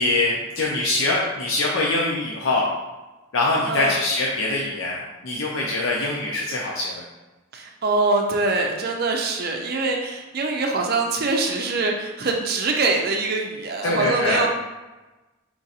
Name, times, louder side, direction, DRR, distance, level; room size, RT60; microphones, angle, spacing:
voice 1, 0.0-2.7 3.3-7.0 13.8-14.4, left 2 dB, 90° left, -3 dB, 0.6 m, -23 dB
voice 2, 7.5-14.5, right 3 dB, 50° right, 2 dB, 0.5 m, -23 dB
4.6 x 2.5 x 4.1 m, 1.1 s
head